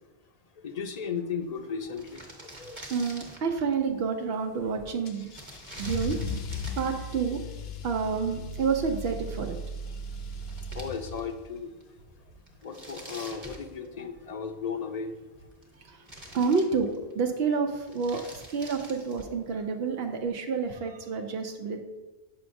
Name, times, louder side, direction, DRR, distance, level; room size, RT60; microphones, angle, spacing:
voice 1, 0.6-3.1 10.7-11.7 12.6-15.1, left 6 dB, 50° left, 0.6 m, -35 dB
sound 1, 1.6-1.7 1.8-3.7 5.3-7.1 9.8-9.9 10.1-11.5 11.8-11.9 12.5-14.2 15.2-15.8 16.1-17.2 17.7-19.4, right 1 dB, 30° right, 1.1 m, -46 dB
voice 2, 2.9-5.3 5.8-6.2 6.8-7.4 7.8-9.6 15.9-16.0 16.3-21.8, right 5 dB, 75° right, 0.8 m, -29 dB
Car / Engine starting / Accelerating revving vroom, 5.1-11.5, left 1 dB, 80° left, 0.9 m, -37 dB
7.7 x 5.7 x 2.6 m
omnidirectional pair, 1.0 m